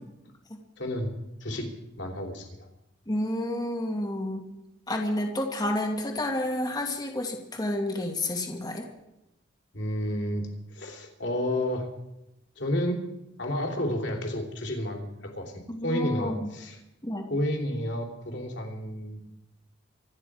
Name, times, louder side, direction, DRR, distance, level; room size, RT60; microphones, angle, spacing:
voice 1, 0.8-1.1 1.4-1.7 2.0-2.7 9.7-11.9 12.6-13.0 13.4-16.8 17.3-19.2, left 1 dB, 65° left, 2 dB, 3.4 m, -31 dB
voice 2, 3.1-4.5 4.9-8.9 15.7-16.5 17.0-17.3, left 1 dB, 20° left, 1 dB, 2.1 m, -30 dB
26.0 x 9.9 x 5.0 m, 0.89 s
head